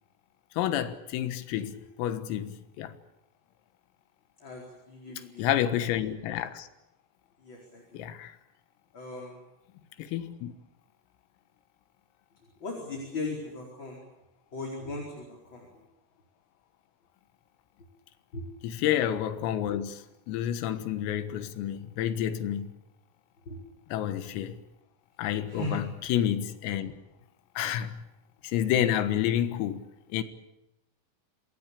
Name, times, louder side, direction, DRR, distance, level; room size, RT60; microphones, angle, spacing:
voice 1, 0.6-2.9 5.4-6.7 7.9-8.4 10.0-10.5 18.6-20.0 20.3-22.7 23.9-24.6 25.2-26.9 27.6-28.0 28.4-29.8 30.1-30.2, left 11 dB, 85° left, 4.1 m, -29 dB
voice 2, 4.4-5.5 5.8-5.9 7.4-8.1 8.9-9.4 12.6-14.0 14.5-15.7 18.3-18.4 23.5-23.6 25.5-25.8, left 2 dB, 25° left, 4.6 m, -38 dB
27.5 x 20.0 x 8.5 m
omnidirectional pair, 5.9 m